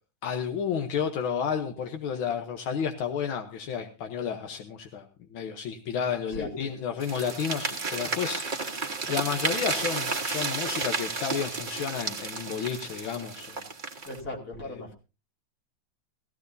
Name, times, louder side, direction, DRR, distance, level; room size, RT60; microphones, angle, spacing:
voice 1, 0.2-5.1 5.3-8.8 9.1-13.6, left 7 dB, 85° left, 5 dB, 1.8 m, -31 dB
voice 2, 6.3-6.7 14.0-14.9, left 2 dB, 50° left, 0 dB, 3.1 m, -37 dB
sound 1, 7.0-14.2, right 4 dB, 30° right, 1.2 m, -32 dB
17.0 x 15.0 x 2.7 m, 0.30 s
omnidirectional pair, 2.1 m